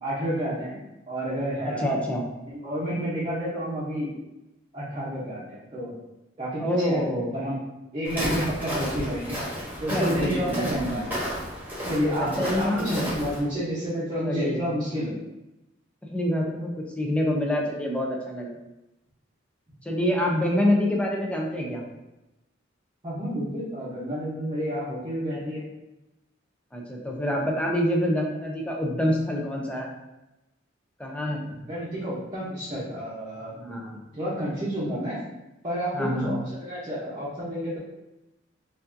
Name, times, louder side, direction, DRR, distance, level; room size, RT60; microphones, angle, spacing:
voice 1, 0.0-0.8 1.1-1.9 2.5-4.1 4.7-5.9 6.4-7.6 7.9-9.4 9.8-11.1 11.9-15.2 23.0-25.7 31.4-33.6 34.1-35.2 35.6-37.8, equal, 25° right, -10 dB, 0.9 m, -30 dB
voice 2, 1.7-2.2 6.6-7.3 9.9-10.8 12.2-13.1 14.2-14.7 16.1-18.5 19.8-21.8 26.7-29.9 31.0-31.4 33.6-34.0 35.9-36.4, left 1 dB, 5° left, -1 dB, 0.6 m, -26 dB
Walk footsteps, 8.0-13.4, equal, 10° right, 1.2 m, -32 dB
4.6 x 2.6 x 2.7 m, 0.95 s
head